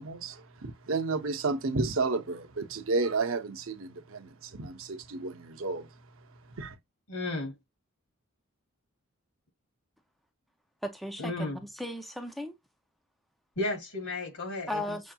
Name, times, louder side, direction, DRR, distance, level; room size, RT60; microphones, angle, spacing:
voice 1, 0.0-5.9 6.6-6.8, right 3 dB, 65° right, 0.8 m, -32 dB
voice 2, 7.1-7.6 11.2-11.6 13.6-15.0, left 2 dB, 85° left, 2.1 m, -33 dB
voice 3, 10.8-12.5 14.7-15.1, left 1 dB, ahead, 0.4 m, -36 dB
6.4 x 2.8 x 2.3 m
head